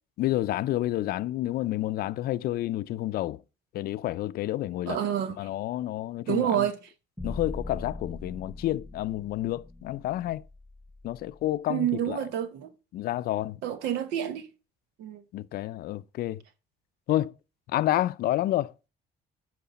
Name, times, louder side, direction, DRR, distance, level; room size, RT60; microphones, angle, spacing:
voice 1, 0.2-3.4 3.7-5.0 5.4-6.7 7.2-10.4 11.0-12.2 12.9-13.6 15.3-16.4 17.1-17.3 17.7-18.7, left 14 dB, 65° left, 0.5 m, -29 dB
voice 2, 4.9-5.4 6.3-6.8 11.7-12.7 13.6-14.5 15.0-15.2, right 10 dB, 90° right, 1.0 m, -28 dB
sound 1, 7.2-11.4, left 2 dB, ahead, 1.2 m, -41 dB
10.5 x 4.7 x 4.1 m
cardioid pair, 110°, 17 cm